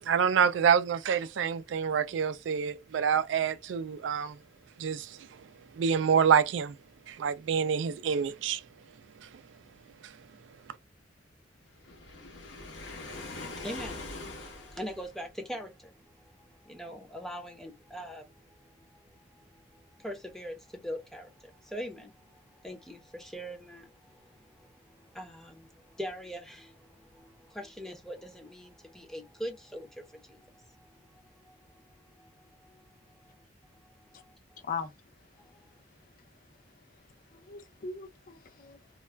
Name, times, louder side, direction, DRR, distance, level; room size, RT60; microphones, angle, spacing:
voice 1, 0.0-4.4 4.8-5.5 5.7-6.8 7.1-8.6 10.0-10.1, right 7 dB, 80° right, 0.3 m, -27 dB
Waves surf, 11.8-15.3, left 2 dB, 75° left, 0.8 m, -42 dB
voice 2, 13.0-31.9 32.1-32.9 33.2-33.4 33.8-34.7 35.4-35.7, equal, 5° left, 0.6 m, -44 dB
voice 3, 37.3-39.0, left 5 dB, 50° left, 0.5 m, -39 dB
2.3 x 2.1 x 3.2 m
head